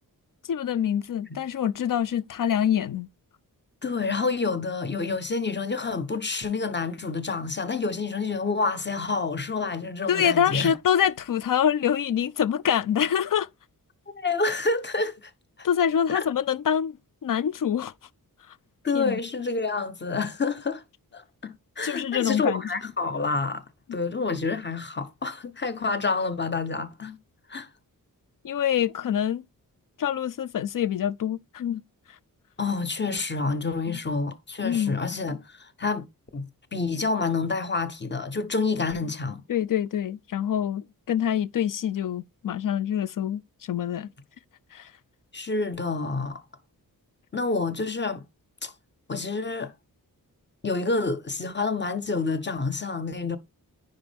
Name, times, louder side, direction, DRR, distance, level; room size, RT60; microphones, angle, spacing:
voice 1, 0.5-3.1 10.1-13.5 15.6-17.0 17.2-17.9 18.9-19.2 21.8-22.6 28.4-29.4 30.0-31.8 33.9-34.0 34.6-35.0 39.5-43.4 43.7-44.1 44.7-44.9, left 9 dB, 60° left, 0.5 m, -25 dB
voice 2, 3.8-10.7 14.2-15.3 16.1-16.2 18.8-20.8 21.1-23.6 23.9-27.2 27.5-27.7 32.6-36.1 36.3-39.4 45.3-46.4 47.3-48.2 48.6-48.7 49.1-49.7 50.6-53.4, left 4 dB, 30° left, 1.0 m, -28 dB
9.5 x 5.2 x 3.5 m
wide cardioid pair, 95°, 36 cm